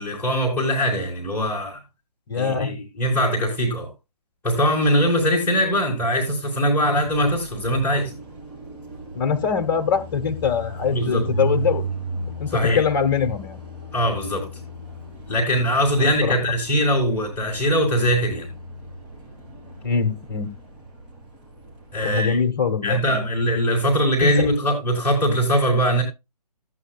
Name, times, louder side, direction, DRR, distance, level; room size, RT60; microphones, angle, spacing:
voice 1, 0.0-1.8 2.3-3.9 4.4-8.1 10.9-11.3 12.5-12.8 13.9-14.5 15.3-18.5 21.9-22.4 22.8-26.0, equal, 10° left, 3.8 m, -21 dB
voice 2, 2.3-2.8 9.1-11.8 12.4-13.6 16.0-16.4 19.8-20.5 22.0-23.2 24.2-24.5 25.3-25.4, left 6 dB, 35° left, 1.3 m, -23 dB
Car passing by, 7.0-22.0, right 2 dB, 20° right, 3.4 m, -35 dB
15.5 x 9.0 x 2.3 m
figure-of-eight pair, 135°, 21 cm